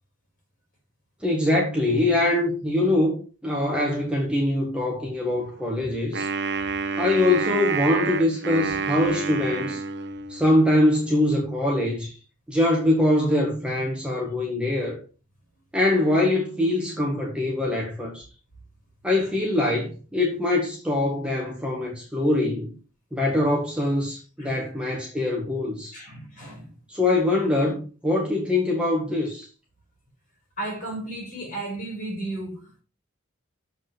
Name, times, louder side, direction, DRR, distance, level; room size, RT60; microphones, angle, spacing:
voice 1, 1.2-6.3 7.0-9.8 10.3-12.2 12.5-15.0 15.7-18.2 19.0-22.7 23.1-25.9 26.9-29.5, left 1 dB, 5° right, 1.7 m, -23 dB
Wind instrument woodwind instrument, 6.1-10.6, right 4 dB, 55° right, 0.9 m, -28 dB
voice 2, 25.9-26.7 30.6-32.8, right 2 dB, 40° left, 5.6 m, -34 dB
7.3 x 5.6 x 6.1 m
head